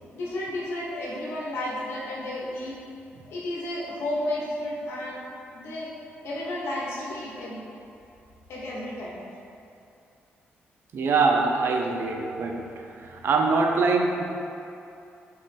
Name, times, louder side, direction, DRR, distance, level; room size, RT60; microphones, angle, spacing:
voice 1, 0.1-2.8 3.3-5.2 5.5-5.9 6.2-7.8 8.5-9.2, left 1 dB, 80° left, -4 dB, 0.9 m, -32 dB
voice 2, 10.9-12.7 13.0-14.2, right 4 dB, 65° right, 2 dB, 0.5 m, -23 dB
3.6 x 3.1 x 4.1 m, 2.7 s
cardioid pair, 80°, 4 cm